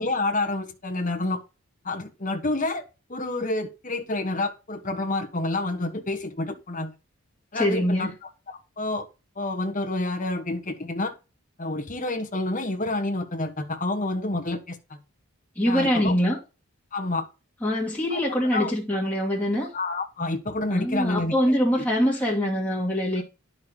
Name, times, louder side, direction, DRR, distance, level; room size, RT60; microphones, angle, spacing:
voice 1, 0.0-1.4 1.8-2.8 3.1-6.9 7.5-8.1 8.8-9.1 9.4-11.1 11.6-15.0 15.7-16.1 16.9-17.2 18.1-18.2 18.5-18.7 19.7-21.4, left 2 dB, 35° left, 1.3 m, -28 dB
voice 2, 7.5-8.1 15.6-16.4 17.6-19.7 20.7-23.2, equal, 5° left, 2.4 m, -24 dB
11.0 x 5.8 x 3.0 m
head